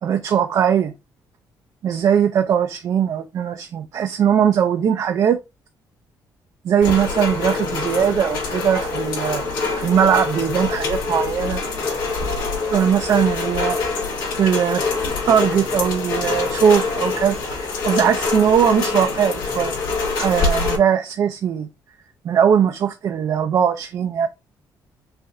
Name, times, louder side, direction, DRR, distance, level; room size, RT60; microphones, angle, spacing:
voice 1, 0.0-0.9 1.8-5.4 6.6-9.4 9.8-11.6 12.7-13.8 14.4-14.8 15.3-19.7 20.2-21.7 22.2-24.3, right 8 dB, 50° right, 0.4 m, -20 dB
Rain, 6.8-20.8, left 4 dB, 75° left, 2.3 m, -25 dB
5.6 x 2.5 x 2.6 m
cardioid pair, 150°, 8 cm